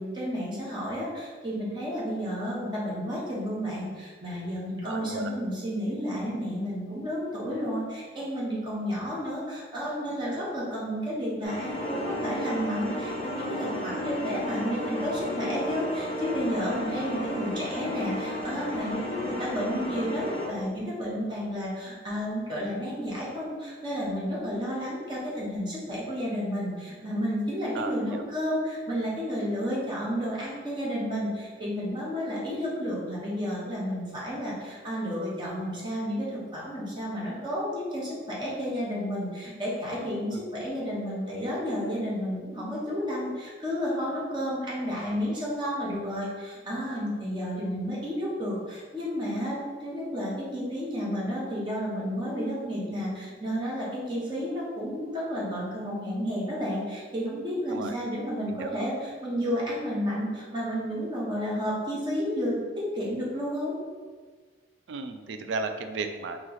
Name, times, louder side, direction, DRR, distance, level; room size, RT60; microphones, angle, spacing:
voice 1, 0.0-63.8, equal, 25° right, -6 dB, 0.9 m, -31 dB
voice 2, 4.8-5.3 17.0-17.2 27.7-28.2 40.3-40.4 57.7-57.9 58.5-58.7 64.9-66.4, right 3 dB, 75° right, 7 dB, 0.3 m, -34 dB
sound 1, 11.4-20.5, left 1 dB, 30° left, 0.8 m, -33 dB
3.1 x 2.9 x 3.9 m, 1.5 s
head